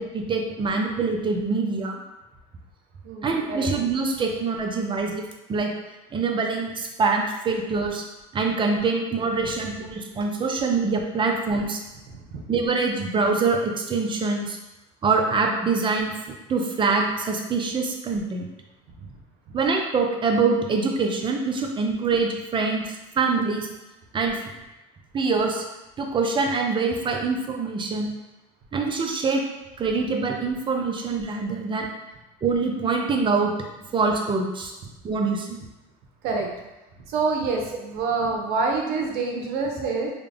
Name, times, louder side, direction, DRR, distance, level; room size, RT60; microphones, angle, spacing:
voice 1, 0.0-2.0 3.2-5.2 5.5-5.7 6.1-8.0 8.3-11.8 12.5-14.6 15.0-16.1 16.5-18.4 19.5-23.7 24.1-24.3 25.1-25.6 26.0-28.1 28.7-29.4 29.8-31.9 32.4-33.5 33.9-34.7 35.0-35.6 39.8-39.9, right 4 dB, 30° right, 2 dB, 0.6 m, -24 dB
voice 2, 3.0-3.7 12.1-12.4 19.0-19.1 36.2-36.5 37.1-40.1, right 4 dB, 75° right, 0 dB, 0.8 m, -27 dB
3.6 x 2.2 x 3.4 m, 1.0 s
supercardioid pair, 100°, 17 cm